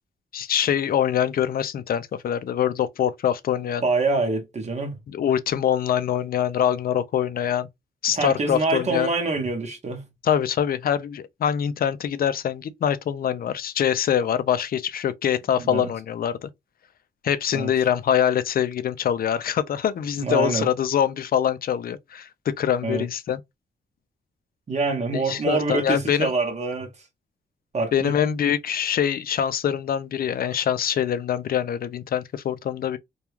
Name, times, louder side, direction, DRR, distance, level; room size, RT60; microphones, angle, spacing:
voice 1, 0.3-3.8 5.1-7.7 8.0-9.1 10.2-16.5 17.2-23.4 25.3-26.3 27.9-33.0, left 9 dB, 55° left, 0.4 m, -24 dB
voice 2, 3.8-5.0 8.2-10.0 15.6-15.9 17.5-17.7 20.2-20.7 22.8-23.1 24.7-26.9 27.7-28.1, right 3 dB, 40° right, 0.9 m, -25 dB
2.3 x 2.2 x 3.0 m
cardioid pair, 105°, 19 cm